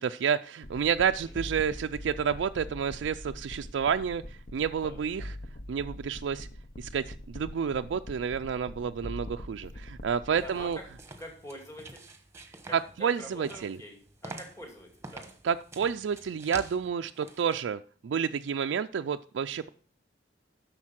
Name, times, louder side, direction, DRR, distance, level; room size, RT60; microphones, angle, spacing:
voice 1, 0.0-5.4 5.7-6.5 6.8-10.8 12.7-13.8 15.4-19.7, right 7 dB, 75° right, 7 dB, 0.4 m, -30 dB
sound 1, 0.6-11.1, left 1 dB, 45° left, 0.8 m, -43 dB
sound 2, 10.3-17.6, right 2 dB, 15° right, 1.2 m, -47 dB
voice 2, 10.4-10.8 11.2-12.0 12.6-15.3, equal, 15° left, 1 dB, 2.3 m, -45 dB
11.0 x 6.5 x 5.8 m, 0.43 s
head